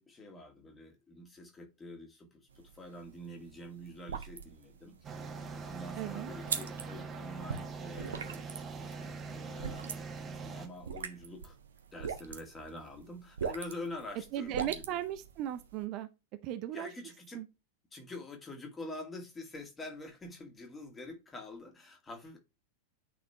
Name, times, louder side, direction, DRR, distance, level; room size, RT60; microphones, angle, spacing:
voice 1, 0.0-5.0 5.5-8.5 8.8-9.9 10.4-11.6 11.9-15.0 16.7-17.4 17.9-22.4, left 1 dB, 15° left, 2.3 m, -46 dB
sound 1, 2.5-15.8, right 6 dB, 65° right, 0.9 m, -42 dB
sound 2, 5.0-10.7, right 4 dB, 20° right, 1.4 m, -42 dB
voice 2, 6.0-6.3 14.3-16.1 16.4-16.9 17.3-17.5, right 12 dB, 40° right, 0.7 m, -37 dB
9.3 x 4.2 x 3.2 m
figure-of-eight pair, 90°, 0 cm